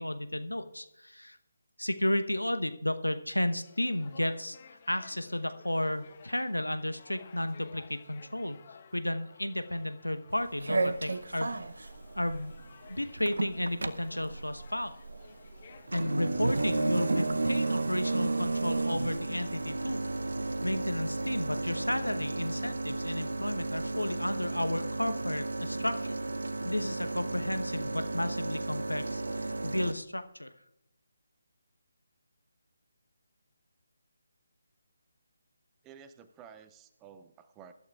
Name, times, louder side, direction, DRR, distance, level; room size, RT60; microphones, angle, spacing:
voice 1, 0.0-1.4 1.8-8.6 8.9-11.6 12.1-12.6 12.9-14.9 15.9-20.0 20.6-26.1 26.6-30.5, left 1 dB, 85° left, 10 dB, 1.0 m, -33 dB
sound 1, 3.5-20.4, left 6 dB, 35° left, 1.0 m, -56 dB
sound 2, 10.3-29.9, right 2 dB, 60° right, 0.7 m, -33 dB
voice 2, 35.8-37.7, right 7 dB, 15° right, 11 dB, 0.6 m, -52 dB
22.5 x 12.0 x 2.4 m, 0.87 s
figure-of-eight pair, 150°, 0 cm